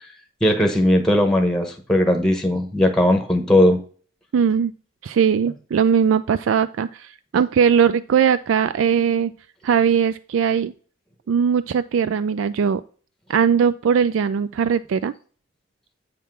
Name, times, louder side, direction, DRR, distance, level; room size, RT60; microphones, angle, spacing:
voice 1, 0.4-3.8, left 1 dB, 5° left, 5 dB, 0.9 m, -18 dB
voice 2, 4.3-4.7 5.0-9.3 9.6-10.7 11.3-12.8 13.3-15.1, right 7 dB, 80° right, 13 dB, 0.3 m, -19 dB
8.3 x 3.6 x 6.0 m, 0.42 s
head